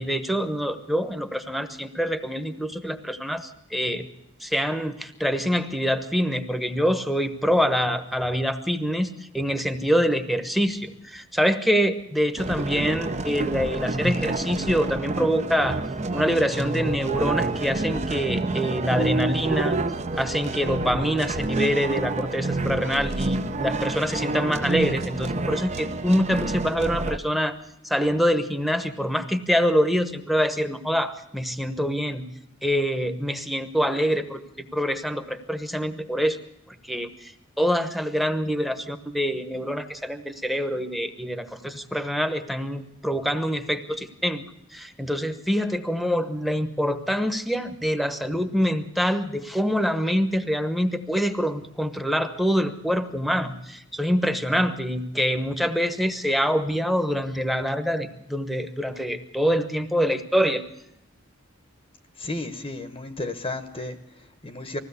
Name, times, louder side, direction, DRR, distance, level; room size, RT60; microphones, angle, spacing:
voice 1, 0.0-4.1 4.4-15.8 16.1-19.8 20.1-27.6 27.8-32.2 32.6-36.4 36.8-37.3 37.6-44.4 44.7-60.6, equal, ahead, 10 dB, 1.0 m, -25 dB
sound 1, 12.4-27.2, right 2 dB, 30° right, 0.7 m, -28 dB
voice 2, 62.2-64.8, left 2 dB, 25° left, 9 dB, 1.0 m, -33 dB
20.5 x 15.5 x 8.2 m, 0.84 s
head